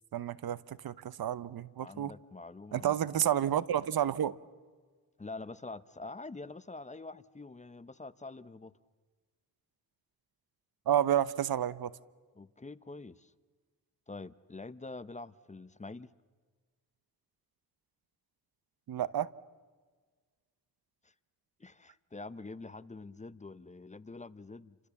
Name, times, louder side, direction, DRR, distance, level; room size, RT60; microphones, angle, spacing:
voice 1, 0.1-2.1 2.7-4.4 10.9-11.9 18.9-19.3, right 10 dB, 75° right, 17 dB, 0.9 m, -30 dB
voice 2, 1.8-3.2 5.2-8.7 12.4-13.3 14.1-16.1 21.0-21.1 21.6-24.8, left 3 dB, 20° left, 15 dB, 0.8 m, -46 dB
29.5 x 26.0 x 7.2 m, 1.5 s
cardioid pair, 100°, 36 cm